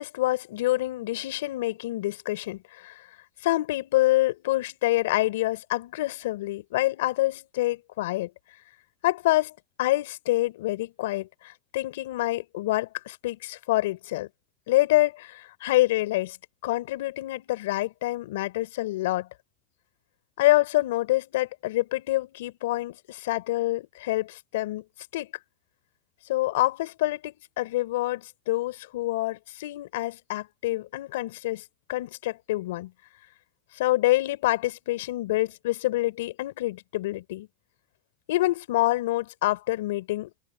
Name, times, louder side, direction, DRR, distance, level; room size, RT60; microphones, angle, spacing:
voice 1, 0.0-3.1 3.4-8.3 9.0-14.3 14.7-16.4 16.6-19.3 20.4-24.8 25.1-25.3 26.3-31.6 31.9-32.9 33.7-37.5 38.3-40.4, left 17 dB, 70° left, 4.3 m, -27 dB
supercardioid pair, 150°, 0 cm